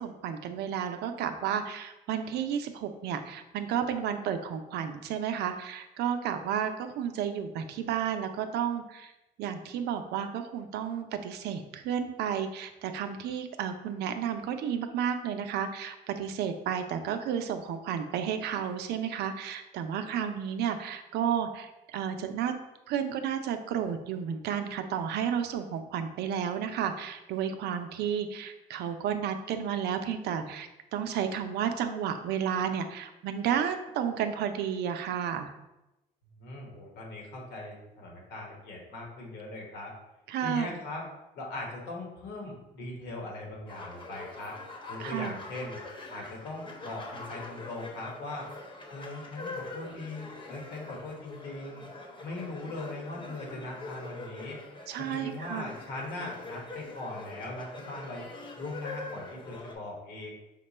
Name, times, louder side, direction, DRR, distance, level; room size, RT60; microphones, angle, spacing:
voice 1, 0.0-9.1 9.4-22.6 22.9-35.5 40.3-40.7 45.0-45.3 54.9-55.7, right 8 dB, 75° right, 8 dB, 0.5 m, -32 dB
voice 2, 36.4-39.9 40.4-41.0 41.3-44.6 44.9-45.8 46.1-48.5 48.9-51.8 52.2-54.6 55.0-58.3 58.6-60.3, left 2 dB, 85° left, -1 dB, 1.4 m, -40 dB
sound 1, 43.7-59.7, left 2 dB, 30° left, 1.0 m, -44 dB
5.7 x 2.2 x 4.2 m, 0.96 s
cardioid pair, 110°, 17 cm